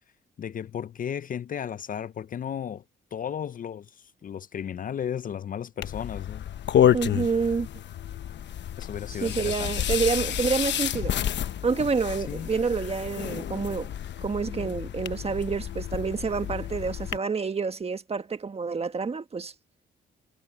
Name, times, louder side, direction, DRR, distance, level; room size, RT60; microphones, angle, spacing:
voice 1, 0.4-2.8 3.1-6.5 8.8-9.9 12.3-12.5, left 8 dB, 45° left, 0.6 m, -34 dB
sound 1, 5.8-17.2, left 10 dB, 65° left, 1.1 m, -29 dB
voice 2, 6.9-7.7 9.2-11.2 11.6-13.9 14.2-19.5, right 5 dB, 30° right, 1.5 m, -28 dB
cardioid pair, 90°, 20 cm